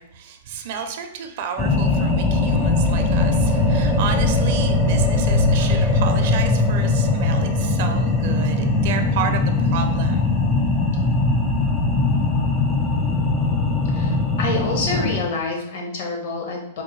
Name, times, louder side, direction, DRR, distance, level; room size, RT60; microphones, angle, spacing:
voice 1, 0.0-10.3, right 7 dB, 55° right, 6 dB, 0.5 m, -31 dB
sound 1, 1.6-15.2, left 2 dB, 15° left, 0.5 m, -20 dB
voice 2, 13.9-16.8, left 2 dB, 60° left, 0 dB, 1.0 m, -27 dB
4.4 x 2.2 x 3.0 m, 0.78 s
hypercardioid pair, 130°, 0 cm